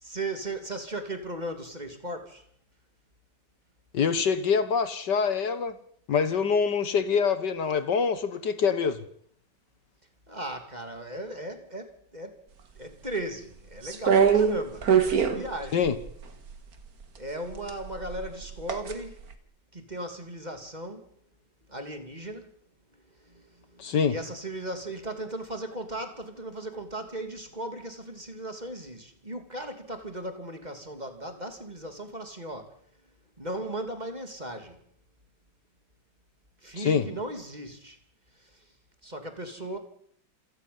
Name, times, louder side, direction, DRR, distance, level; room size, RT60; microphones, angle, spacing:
voice 1, 0.0-2.4 10.3-12.4 12.7-15.8 17.2-19.2 19.7-21.1 21.7-22.5 23.2-32.8 33.4-34.8 36.6-38.0 38.4-38.6 39.0-39.8, right 1 dB, 20° right, 2.8 m, -37 dB
voice 2, 3.9-5.8 6.1-9.0 15.7-16.0 23.8-24.2 36.8-37.1, left 6 dB, 65° left, 1.9 m, -25 dB
sound 1, 13.8-16.6 17.5-19.0 19.3-19.4, right 7 dB, 50° right, 2.1 m, -23 dB
28.0 x 9.7 x 9.6 m
omnidirectional pair, 2.0 m